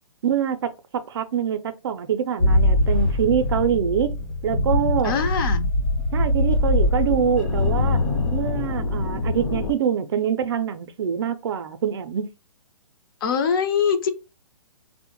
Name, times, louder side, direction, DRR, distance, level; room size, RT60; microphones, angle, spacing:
voice 1, 0.2-0.6 1.1-4.1 4.4-5.1 6.1-8.0 8.3-12.3, right 8 dB, 50° right, 0.4 m, -24 dB
sound 1, 2.4-9.7, left 2 dB, 70° left, 0.8 m, -22 dB
voice 2, 5.0-5.7 13.2-14.1, left 6 dB, 40° left, 0.5 m, -23 dB
3.6 x 2.1 x 2.9 m
hypercardioid pair, 135°, 17 cm